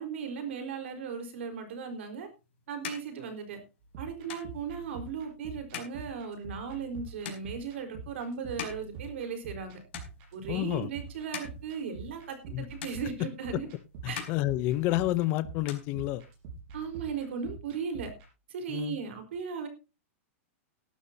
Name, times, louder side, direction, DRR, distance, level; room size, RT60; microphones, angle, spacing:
voice 1, 0.0-2.3 2.7-3.6 4.0-9.8 10.3-13.7 14.1-14.2 16.7-18.1 18.5-19.7, right 6 dB, 60° right, 6 dB, 4.3 m, -37 dB
sound 1, 2.0-9.6 9.9-10.6 11.1-12.5 12.8-13.7 14.0-15.2 15.5-16.6, left 9 dB, 50° left, 4.7 m, -45 dB
sound 2, 3.8-18.3, right 4 dB, 30° right, 6.0 m, -46 dB
voice 2, 10.5-10.9 12.5-12.7 14.0-16.2 18.7-19.0, left 16 dB, 25° left, 16 dB, 0.6 m, -29 dB
17.5 x 12.5 x 2.8 m, 0.30 s
supercardioid pair, 180°, 7 cm